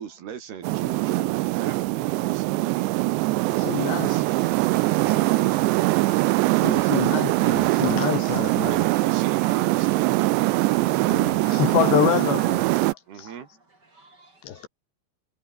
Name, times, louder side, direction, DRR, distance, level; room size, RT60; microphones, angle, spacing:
voice 1, 0.0-2.8 3.7-4.7 5.1-5.8 8.4-10.1 13.1-13.5, right 8 dB, 60° right, 4.3 m, -39 dB
sound 1, 0.6-12.9, right 21 dB, 80° right, 2.8 m, -22 dB
voice 2, 3.5-4.2 6.6-8.9 10.8-13.3 14.4-14.7, left 10 dB, 70° left, 4.1 m, -27 dB
sound 2, 3.5-12.7, equal, ahead, 3.6 m, -46 dB
voice 3, 13.9-14.7, right 2 dB, 20° right, 5.1 m, -56 dB
omnidirectional pair, 5.3 m